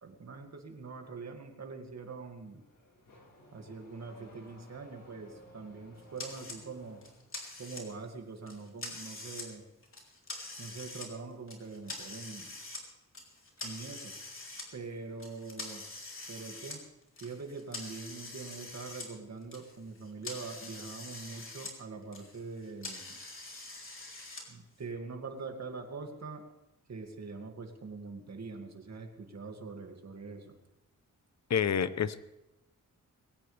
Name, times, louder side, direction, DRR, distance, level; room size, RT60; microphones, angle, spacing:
voice 1, 0.0-2.6 3.5-7.0 7.6-9.7 10.6-12.5 13.6-14.1 14.7-15.8 16.3-16.8 17.2-23.2 24.5-26.4 26.9-30.5, right 4 dB, 55° right, 4 dB, 2.4 m, -43 dB
Car / Accelerating revving vroom, 2.3-7.3, left 1 dB, 80° left, 6.1 m, -57 dB
sound 1, 6.2-6.6 7.0-8.1 8.5-9.5 9.8-11.1 11.5-12.8 13.1-14.6 15.2-19.1 19.4-21.7 22.0-24.4, left 2 dB, 40° left, 3.6 m, -44 dB
voice 2, 31.5-32.2, left 7 dB, 55° left, 14 dB, 0.8 m, -28 dB
21.5 x 17.5 x 3.4 m, 0.88 s
wide cardioid pair, 125°, 32 cm